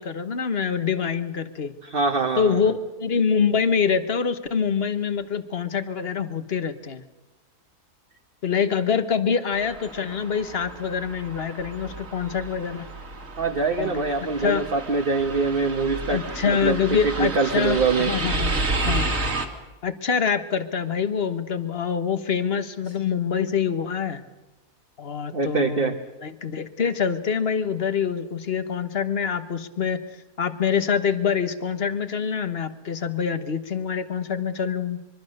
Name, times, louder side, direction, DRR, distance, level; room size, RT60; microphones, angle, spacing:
voice 1, 0.0-1.7 2.4-7.0 8.4-12.9 13.8-14.0 14.4-14.6 16.1-19.2 19.8-24.2 25.0-30.0 30.4-35.0, left 6 dB, 40° left, 11 dB, 1.4 m, -25 dB
voice 2, 1.8-2.6 13.4-18.1 25.3-26.0, right 4 dB, 40° right, 4 dB, 1.4 m, -24 dB
sound 1, 9.5-19.5, right 2 dB, 55° right, 2.7 m, -31 dB
25.0 x 23.0 x 6.6 m, 1.1 s
omnidirectional pair, 1.6 m